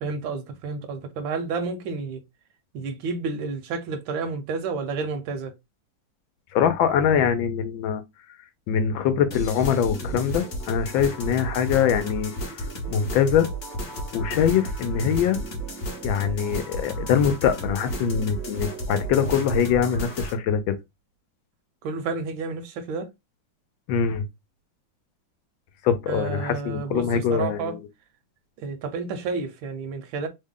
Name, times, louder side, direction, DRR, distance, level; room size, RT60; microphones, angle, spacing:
voice 1, 0.0-2.2 2.7-5.5 21.8-23.1 26.1-27.7 28.6-30.3, right 4 dB, 80° right, 1.5 m, -30 dB
voice 2, 6.5-8.0 8.7-12.3 12.9-13.5 14.1-15.4 16.0-20.7 23.9-24.2 25.8-27.8, left 8 dB, 80° left, 1.3 m, -23 dB
sound 1, 9.3-20.3, right 1 dB, 50° left, 0.9 m, -33 dB
3.6 x 2.1 x 3.6 m
omnidirectional pair, 2.2 m